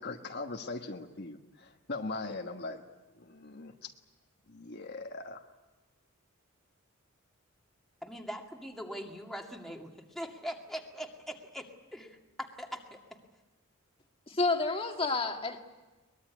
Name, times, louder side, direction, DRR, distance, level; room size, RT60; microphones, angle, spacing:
voice 1, 0.0-2.8 3.1-3.9 4.5-5.4, left 3 dB, 50° left, 3 dB, 1.4 m, -40 dB
voice 2, 8.0-13.0, equal, ahead, 1 dB, 2.2 m, -42 dB
voice 3, 14.3-15.6, left 3 dB, 25° left, 4 dB, 1.9 m, -29 dB
23.0 x 21.0 x 9.5 m, 1.1 s
head